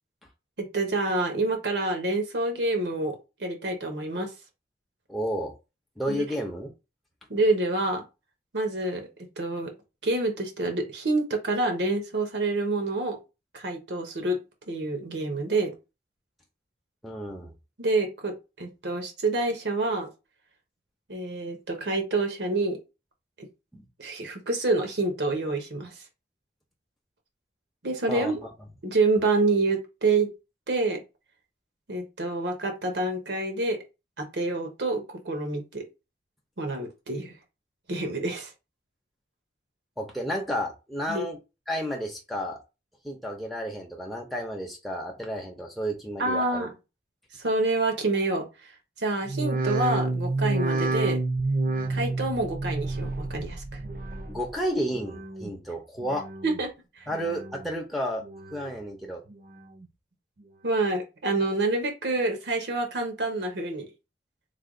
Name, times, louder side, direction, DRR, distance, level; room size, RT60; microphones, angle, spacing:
voice 1, 0.6-4.3 6.1-6.2 7.3-8.0 8.5-9.1 9.4-9.7 10.0-13.2 13.5-14.4 14.7-15.7 17.8-20.1 21.1-22.8 23.4-23.5 24.0-26.0 27.8-28.4 28.8-30.3 30.7-31.0 31.9-33.8 34.2-35.8 36.6-37.3 37.9-38.5 41.1-41.2 46.2-46.7 47.4-48.7 49.0-51.2 51.9-53.8 56.4-56.7 57.0-57.1 60.6-63.9, right 2 dB, 80° right, 0.9 m, -27 dB
voice 2, 5.1-5.5 6.0-6.7 17.0-17.5 23.7-23.9 28.1-28.3 40.0-41.4 41.7-42.6 43.0-46.7 54.3-56.3 57.1-58.2 58.5-59.2, equal, ahead, 0.6 m, -31 dB
sound 1, 49.2-54.6 54.9-55.5 56.0-56.7 57.1-57.7 58.2-58.8 59.3-59.9 60.4-60.5, right 2 dB, 50° right, 0.5 m, -30 dB
3.3 x 2.2 x 3.6 m
head